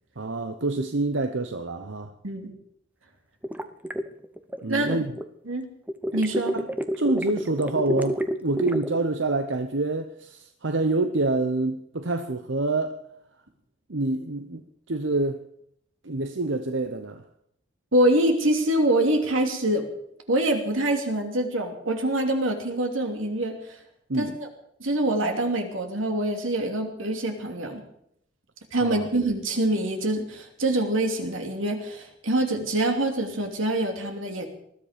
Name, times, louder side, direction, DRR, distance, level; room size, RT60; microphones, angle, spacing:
voice 1, 0.2-2.1 4.6-5.1 6.5-6.7 7.0-13.0 13.9-14.6 14.9-15.4 16.0-17.2 24.1-24.4 28.8-29.1, right 2 dB, 65° right, 0.9 m, -27 dB
sound 1, 3.4-5.3 5.9-9.0, right 1 dB, 10° right, 0.8 m, -29 dB
voice 2, 4.7-5.1 5.5-5.7 6.1-6.6 17.9-19.9 20.3-23.8 24.1-24.5 24.8-27.8 28.7-34.5, right 1 dB, 85° right, 2.9 m, -25 dB
20.5 x 13.0 x 5.2 m
head